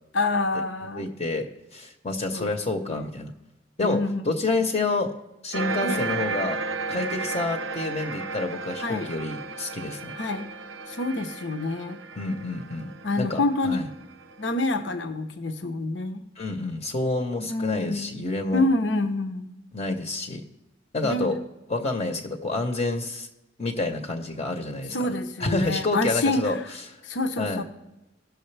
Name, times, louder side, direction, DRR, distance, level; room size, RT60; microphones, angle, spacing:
voice 1, 0.1-1.1 2.3-2.5 2.9-3.0 3.8-4.3 5.8-6.1 8.8-9.1 10.2-10.5 10.9-12.0 13.0-13.8 14.4-16.2 17.5-18.1 18.5-19.5 21.0-21.3 24.9-26.5 27.0-27.6, left 2 dB, 70° left, 6 dB, 0.9 m, -27 dB
voice 2, 0.9-1.5 1.7-3.3 3.8-4.0 4.2-5.1 5.4-6.6 6.9-10.1 12.2-12.9 13.2-13.9 16.4-18.6 19.7-20.4 20.9-21.4 21.7-23.3 23.6-25.0 25.4-27.0 27.4-27.6, left 2 dB, 35° left, 4 dB, 0.9 m, -28 dB
sound 1, 5.5-14.5, right 4 dB, 90° right, 0.7 m, -34 dB
16.5 x 6.4 x 3.3 m, 0.98 s
head